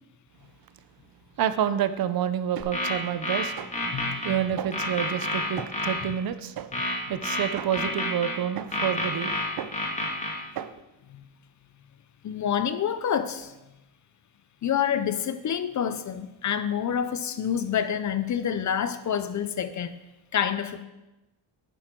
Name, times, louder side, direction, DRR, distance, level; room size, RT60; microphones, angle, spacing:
voice 1, 1.4-3.7 4.2-6.7 7.1-9.8 10.6-10.7, right 9 dB, 50° right, 13 dB, 0.6 m, -28 dB
sound 1, 2.6-4.4 4.7-6.0 6.7-8.4 8.7-10.3, left 1 dB, 15° left, 2.1 m, -29 dB
voice 2, 3.9-4.3 11.1-11.2 12.2-13.5 14.6-20.0 20.3-20.8, left 8 dB, 40° left, 12 dB, 0.5 m, -28 dB
10.5 x 9.0 x 4.5 m, 1.0 s
cardioid pair, 155°, 46 cm